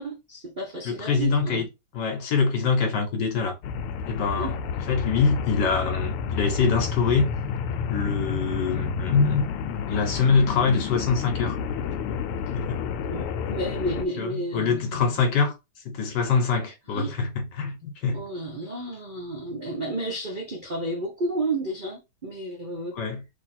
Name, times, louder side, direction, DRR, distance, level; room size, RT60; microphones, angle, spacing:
voice 1, 0.0-1.6 4.4-4.5 13.1-15.1 16.9-17.1 18.1-23.0, right 2 dB, 80° right, 0.4 m, -32 dB
voice 2, 0.8-1.7 1.9-3.6 4.0-4.6 4.9-7.3 7.9-9.4 9.9-11.6 12.5-12.9 14.2-15.5 15.8-18.2 23.0-23.2, left 5 dB, 60° left, 1.3 m, -24 dB
sound 1, 3.6-14.1, left 6 dB, 85° left, 1.5 m, -30 dB
3.5 x 2.9 x 4.2 m
omnidirectional pair, 2.4 m